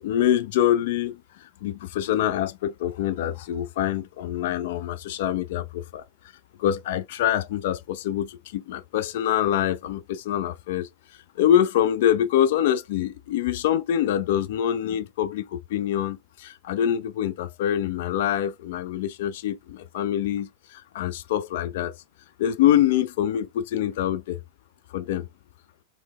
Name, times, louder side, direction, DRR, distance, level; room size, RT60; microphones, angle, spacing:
voice 1, 0.0-6.0 6.6-10.9 11.4-21.9 22.4-24.4 24.9-25.3, left 11 dB, 55° left, 0.3 m, -25 dB
4.4 x 2.1 x 2.3 m
figure-of-eight pair, 90°, 0 cm